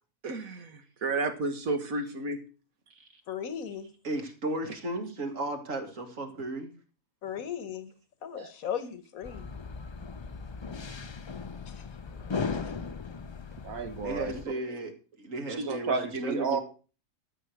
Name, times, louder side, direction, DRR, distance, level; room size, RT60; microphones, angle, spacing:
voice 1, 0.2-2.4 8.3-8.5 13.6-14.3 15.6-16.6, right 3 dB, 85° right, 2.0 m, -31 dB
voice 2, 3.3-3.9 7.2-7.9 8.2-9.5 11.7-11.8 12.1-12.6, left 8 dB, 80° left, 1.6 m, -37 dB
voice 3, 4.0-6.7 14.0-14.9 15.2-16.6, right 1 dB, 65° right, 2.4 m, -34 dB
sound 1, 9.2-14.5, left 5 dB, 40° left, 0.3 m, -37 dB
12.5 x 6.5 x 6.4 m
omnidirectional pair, 1.4 m